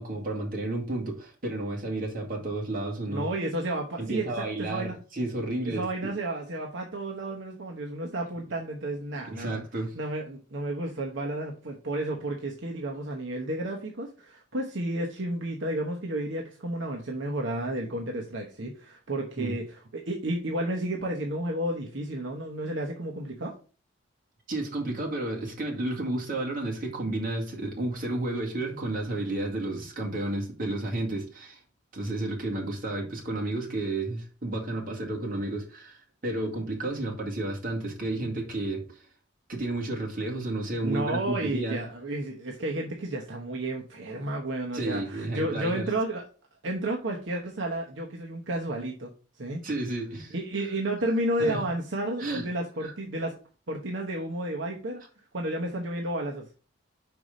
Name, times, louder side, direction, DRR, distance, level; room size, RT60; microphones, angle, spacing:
voice 1, 0.0-3.3 4.0-6.1 9.2-9.9 19.4-19.6 24.5-31.6 31.9-39.0 39.5-41.8 44.7-45.8 49.6-50.3 51.4-51.6 52.2-52.5 52.8-52.9, right 2 dB, 45° right, 2.2 m, -32 dB
voice 2, 3.1-5.0 5.6-9.6 9.9-23.5 40.8-46.2 46.6-49.1 49.4-49.6 50.3-53.3 53.7-55.0 55.3-56.4, right 1 dB, 70° right, 1.0 m, -32 dB
5.3 x 4.7 x 5.0 m
head